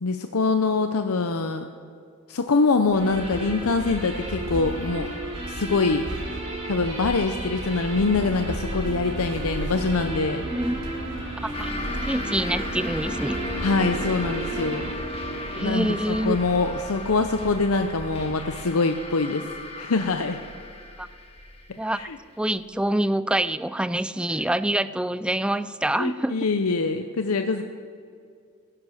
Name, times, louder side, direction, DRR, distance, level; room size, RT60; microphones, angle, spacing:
voice 1, 0.0-1.6 2.3-5.1 5.5-6.0 6.7-10.5 13.6-14.9 15.6-19.5 19.8-20.4 21.9-22.2 26.0-27.6, left 3 dB, 80° left, 7 dB, 0.7 m, -24 dB
sound 1, 2.9-14.9, right 2 dB, 30° right, 2.8 m, -35 dB
sound 2, 2.9-18.6, right 1 dB, 60° right, 1.2 m, -37 dB
voice 2, 11.4-11.7 12.1-13.4 15.6-16.4 21.0-21.1 21.8-22.1 22.4-26.5, right 1 dB, 5° right, 14 dB, 0.3 m, -26 dB
sound 3, 11.5-22.7, left 1 dB, 25° left, 1.6 m, -35 dB
15.5 x 10.5 x 6.4 m, 2.3 s
head